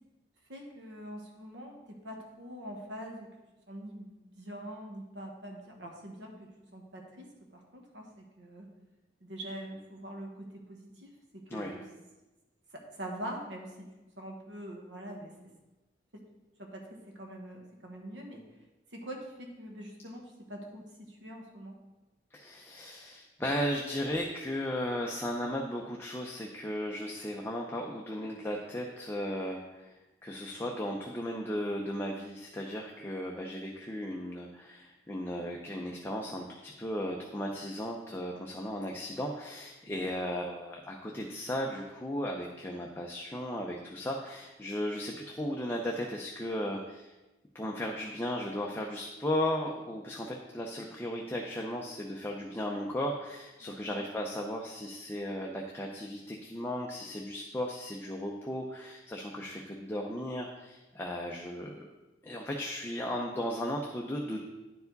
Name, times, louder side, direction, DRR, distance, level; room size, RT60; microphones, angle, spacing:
voice 1, 0.5-3.3 3.7-8.7 9.2-11.8 12.7-13.9 14.2-15.3 16.6-18.4 18.9-21.8 39.8-40.0 53.6-54.0, right 1 dB, 80° right, 1 dB, 1.3 m, -44 dB
voice 2, 22.3-30.0 30.2-47.1 47.5-61.9 62.2-64.4, equal, 15° left, 0 dB, 0.6 m, -36 dB
10.5 x 4.7 x 4.0 m, 1.1 s
head